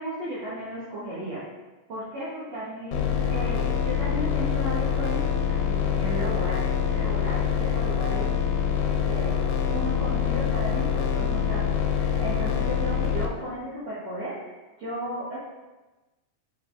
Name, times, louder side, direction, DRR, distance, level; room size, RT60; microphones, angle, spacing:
voice 1, 0.0-1.4 1.9-8.3 8.8-9.4 9.7-15.4, right 1 dB, 65° right, -10 dB, 1.6 m, -35 dB
sound 1, 2.9-13.3, left 7 dB, 80° left, 2.9 m, -25 dB
9.9 x 5.5 x 2.7 m, 1.1 s
omnidirectional pair, 5.1 m